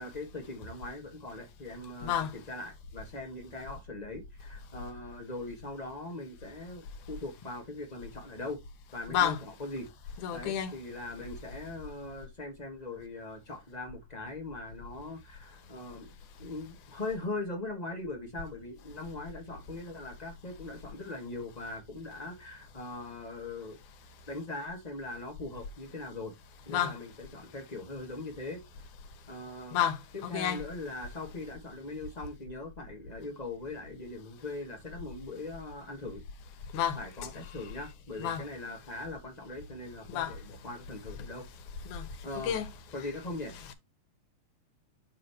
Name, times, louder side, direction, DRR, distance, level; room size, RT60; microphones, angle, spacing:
voice 1, 0.0-8.6 8.9-9.3 9.6-9.9 10.3-16.1 16.4-23.8 24.3-26.3 26.6-28.6 29.3-29.8 30.1-36.2 36.9-41.5 42.2-42.6 42.9-43.6, left 2 dB, 30° left, 0.7 m, -41 dB
voice 2, 9.1-9.4 10.2-10.7 26.7-27.0 29.7-30.0 30.2-30.6 36.7-37.0 38.2-38.4 40.1-40.3 41.9-42.1 42.4-42.7 43.7-43.8, left 9 dB, 90° left, 2.5 m, -30 dB
7.4 x 3.0 x 5.6 m
omnidirectional pair, 3.4 m